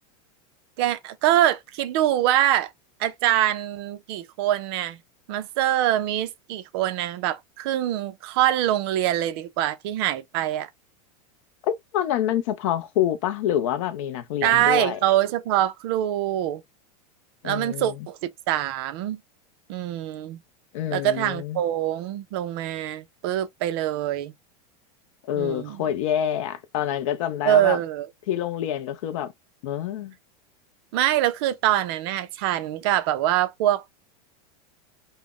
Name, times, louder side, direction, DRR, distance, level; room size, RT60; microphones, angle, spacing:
voice 1, 0.8-2.7 3.0-5.0 5.3-10.7 14.4-16.6 17.4-19.2 19.7-20.4 20.9-24.3 25.4-25.9 27.4-28.1 30.9-33.9, right 13 dB, 45° right, 0.4 m, -24 dB
voice 2, 11.6-15.0 17.4-17.9 20.7-21.6 25.3-27.8 28.3-29.3 29.6-30.1, left 10 dB, 60° left, 0.5 m, -27 dB
2.4 x 2.1 x 3.4 m
supercardioid pair, 170°, 19 cm